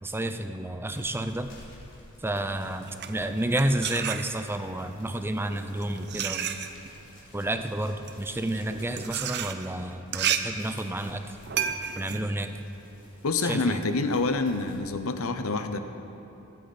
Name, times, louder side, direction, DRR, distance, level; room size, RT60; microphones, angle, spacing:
voice 1, 0.0-1.5 2.2-6.5 7.3-11.2 12.0-12.5 13.4-13.8, right 1 dB, 10° right, 8 dB, 0.5 m, -30 dB
sound 1, 0.6-14.8, left 1 dB, 60° left, 3.3 m, -54 dB
sound 2, 2.8-4.7 5.5-13.4, right 8 dB, 50° right, 0.6 m, -33 dB
voice 2, 13.2-15.8, left 3 dB, 75° left, 8 dB, 0.8 m, -27 dB
21.0 x 8.5 x 4.2 m, 3.0 s
head